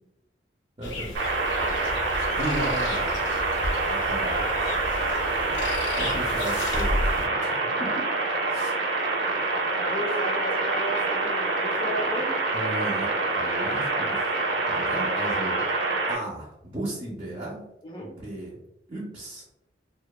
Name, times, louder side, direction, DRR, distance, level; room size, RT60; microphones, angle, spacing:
sound 1, 0.8-7.3, left 1 dB, 85° left, 0.5 m, -33 dB
voice 1, 0.8-1.3 2.1-3.2 3.9-4.8 5.9-7.5 7.8-8.1 8.5-9.1 12.5-14.4 14.7-15.6 16.1-17.6 18.0-18.6 18.9-19.4, right 1 dB, 30° right, -5 dB, 0.5 m, -35 dB
sound 2, 1.1-16.1, right 3 dB, 75° right, 0.6 m, -26 dB
voice 2, 9.8-12.3 17.8-18.1, equal, 25° left, -2 dB, 0.4 m, -34 dB
2.7 x 2.1 x 2.2 m, 0.87 s
head